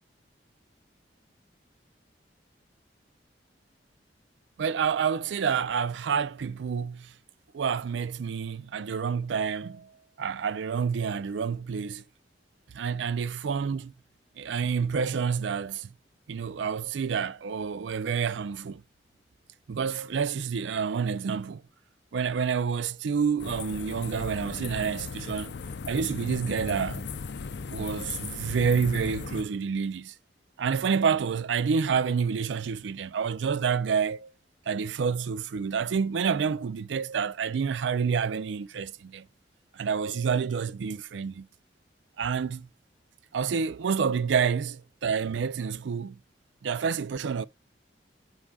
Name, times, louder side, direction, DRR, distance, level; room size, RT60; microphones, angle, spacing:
voice 1, 4.6-7.1 7.5-9.9 10.2-12.0 12.7-13.9 14.4-15.9 16.3-18.8 19.7-21.6 22.1-25.5 25.9-27.0 27.7-30.1 30.6-34.3 34.7-39.3 39.7-41.5 42.2-42.7 43.3-46.2 46.6-47.4, right 6 dB, 85° right, 0.4 m, -28 dB
sound 1, 23.4-29.4, left 5 dB, 70° left, 0.5 m, -37 dB
8.7 x 4.8 x 2.3 m
head